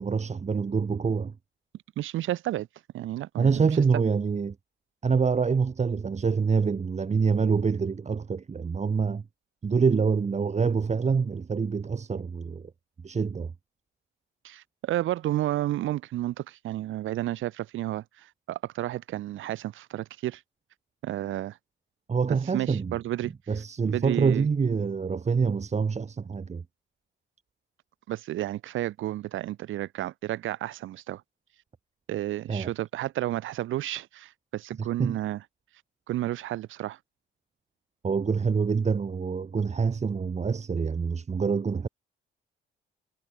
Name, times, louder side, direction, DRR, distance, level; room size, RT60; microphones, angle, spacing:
voice 1, 0.0-1.3 3.4-4.6 5.0-9.2 9.6-12.7 13.0-13.5 22.1-22.9 23.5-26.6 32.5-32.7 34.8-35.2 38.0-41.9, right 5 dB, 35° right, 2.3 m, -26 dB
voice 2, 2.0-2.7 2.9-3.6 3.9-4.1 14.4-20.4 21.0-21.6 22.5-23.3 23.9-24.5 28.1-31.2 32.1-35.4 36.1-37.0, right 14 dB, 80° right, 1.8 m, -31 dB
cardioid pair, 90°, 20 cm